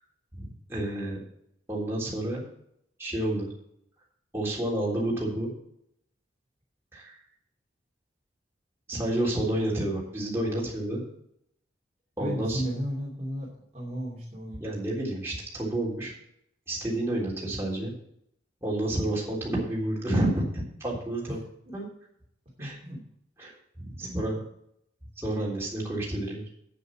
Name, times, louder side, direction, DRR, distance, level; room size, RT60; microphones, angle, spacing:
voice 1, 0.3-1.2 1.7-2.4 3.0-3.5 4.3-5.5 6.9-7.1 8.9-11.0 12.2-12.6 14.6-16.1 16.7-17.9 18.6-21.4 21.7-21.8 22.6-22.7 23.4-24.4 25.2-26.4, right 1 dB, 15° right, -4 dB, 3.5 m, -30 dB
voice 2, 12.2-14.6 21.3-21.4 21.7-21.8 22.6-23.0 24.0-24.2, equal, 35° right, -4 dB, 2.6 m, -34 dB
8.8 x 8.2 x 5.9 m, 0.72 s
head